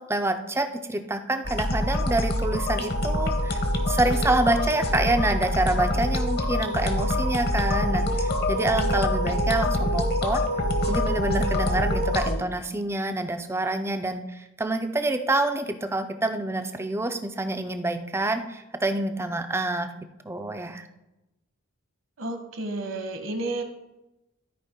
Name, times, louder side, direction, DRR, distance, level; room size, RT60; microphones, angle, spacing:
voice 1, 0.0-3.6 3.9-10.4 10.9-19.9 20.2-20.9, right 2 dB, 10° right, 7 dB, 0.5 m, -27 dB
sound 1, 1.4-12.4, left 1 dB, 50° left, 1.1 m, -25 dB
voice 2, 22.2-23.6, right 2 dB, 65° right, 5 dB, 1.3 m, -31 dB
13.0 x 4.8 x 3.7 m, 0.96 s
head